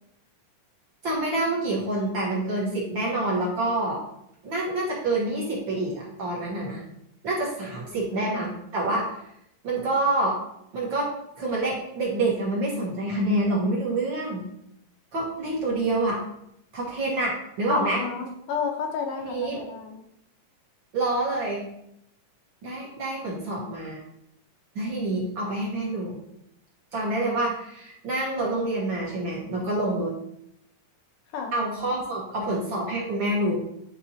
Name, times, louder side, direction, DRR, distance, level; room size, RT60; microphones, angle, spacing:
voice 1, 1.0-4.0 4.4-6.8 7.2-9.1 9.6-10.4 10.7-11.1 11.4-14.5 15.1-16.2 16.7-18.0 19.2-19.6 20.9-21.6 22.6-24.0 24.7-26.2 26.9-30.2 31.5-33.6, right 2 dB, 50° right, -5 dB, 1.6 m, -27 dB
voice 2, 7.7-8.4 17.7-20.0 31.3-31.5, left 6 dB, 85° left, 2 dB, 2.5 m, -32 dB
10.0 x 3.6 x 2.8 m, 0.78 s
omnidirectional pair, 3.6 m